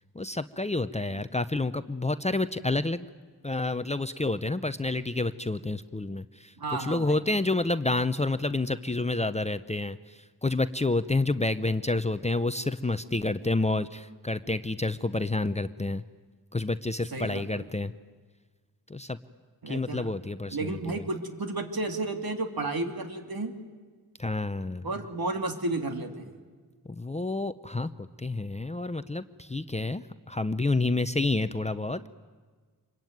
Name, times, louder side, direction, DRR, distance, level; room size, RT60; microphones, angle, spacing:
voice 1, 0.1-3.1 3.4-16.0 16.5-17.9 18.9-19.2 19.7-21.1 24.2-24.9 26.9-27.9 28.2-32.1, left 2 dB, 15° left, 11 dB, 0.7 m, -29 dB
voice 2, 6.6-7.2 17.1-17.6 19.6-20.1 20.5-23.5 24.8-26.3, right 2 dB, 60° right, 5 dB, 2.8 m, -32 dB
26.0 x 22.5 x 9.4 m, 1.5 s
wide cardioid pair, 70°, 40 cm